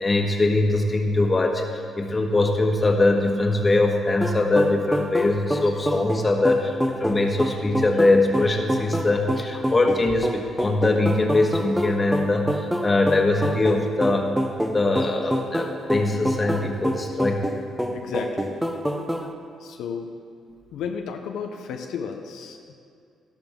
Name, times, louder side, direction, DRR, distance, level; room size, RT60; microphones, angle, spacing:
voice 1, 0.0-14.3 14.7-17.4, left 2 dB, 25° left, 2 dB, 1.5 m, -22 dB
sound 1, 4.2-19.3, equal, 5° right, 0.9 m, -27 dB
voice 2, 17.9-18.5 19.6-20.1 20.7-22.7, left 6 dB, 85° left, 3 dB, 0.8 m, -33 dB
12.5 x 12.0 x 3.8 m, 2.4 s
cardioid pair, 90°, 0 cm